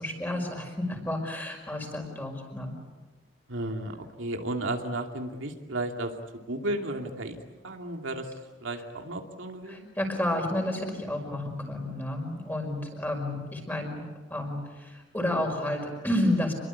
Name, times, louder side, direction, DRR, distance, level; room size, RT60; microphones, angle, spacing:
voice 1, 0.0-2.7 9.7-16.5, left 1 dB, 10° left, 2 dB, 5.3 m, -31 dB
voice 2, 3.5-6.2 6.5-7.4 7.6-8.3 8.6-9.9, right 1 dB, 85° right, 3 dB, 2.6 m, -33 dB
28.5 x 22.5 x 8.5 m, 1.2 s
head